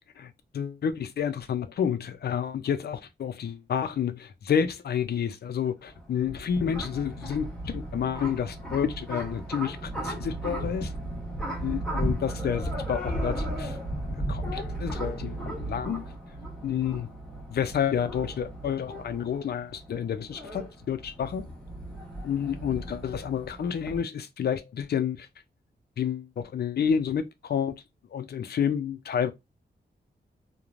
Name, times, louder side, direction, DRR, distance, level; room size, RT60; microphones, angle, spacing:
voice 1, 0.2-10.9 11.4-13.8 14.3-16.0 16.6-17.1 17.5-21.5 22.2-25.3 26.0-27.8 28.1-29.3, left 8 dB, 65° left, 0.5 m, -30 dB
sound 1, 5.9-24.0, right 1 dB, 5° left, 0.8 m, -35 dB
3.0 x 2.1 x 2.4 m
wide cardioid pair, 135°, 18 cm